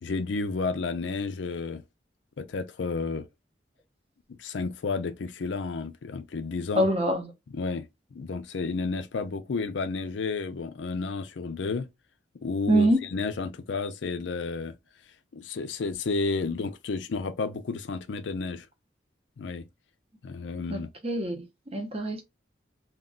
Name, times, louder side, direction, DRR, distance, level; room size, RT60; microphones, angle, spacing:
voice 1, 0.0-1.8 2.4-3.3 4.4-6.9 7.5-7.9 8.1-11.9 12.4-14.7 15.3-18.7 19.4-19.7 20.2-20.9, left 4 dB, 80° left, 0.4 m, -31 dB
voice 2, 6.8-7.3 12.7-13.0 20.7-21.4 21.7-22.2, right 1 dB, 30° right, 0.6 m, -24 dB
2.4 x 2.2 x 3.6 m
head